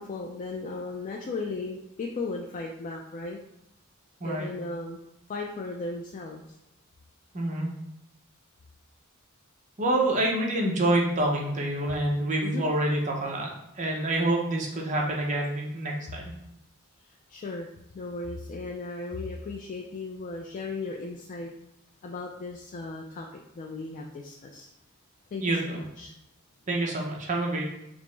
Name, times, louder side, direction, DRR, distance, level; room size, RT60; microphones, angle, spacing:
voice 1, 0.0-3.4 4.2-5.0 5.3-6.4 12.4-12.6 17.3-17.7 17.9-21.5 22.0-24.7 25.3-26.1, left 3 dB, 35° left, 0 dB, 0.3 m, -36 dB
voice 2, 7.3-7.7 9.8-13.5 13.8-16.3 25.4-25.8 26.7-27.6, right 1 dB, 35° right, -1 dB, 0.7 m, -27 dB
5.0 x 2.0 x 3.2 m, 0.84 s
head